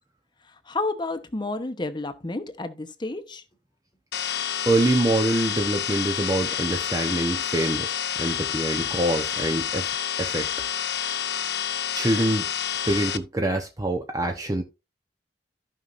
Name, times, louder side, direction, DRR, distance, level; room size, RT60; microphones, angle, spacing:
voice 1, 0.7-3.4 12.9-13.0, left 2 dB, 25° left, 1.0 m, -30 dB
sound 1, 4.1-13.2, left 9 dB, 65° left, 0.7 m, -29 dB
voice 2, 4.6-10.5 11.9-12.5 12.9-14.6, right 1 dB, 20° right, 0.9 m, -25 dB
15.0 x 5.5 x 2.6 m
head